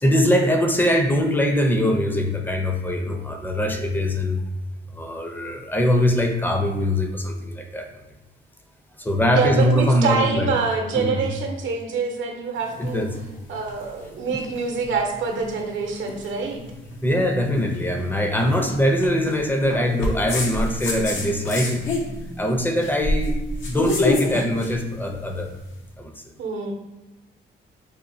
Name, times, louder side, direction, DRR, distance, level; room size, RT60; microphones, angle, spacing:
voice 1, 0.0-4.4 4.9-7.9 9.0-10.5 10.9-11.2 12.8-13.2 14.3-14.4 17.0-21.9 22.4-23.4 23.7-25.5 26.0-26.1, left 1 dB, 10° left, 4 dB, 0.5 m, -22 dB
voice 2, 9.3-13.1 13.5-16.6 26.4-26.7, right 5 dB, 75° right, 2 dB, 0.8 m, -25 dB
sound 1, 12.6-25.8, left 2 dB, 75° left, 0.8 m, -29 dB
5.0 x 2.4 x 2.6 m, 1.1 s
cardioid pair, 90°, 20 cm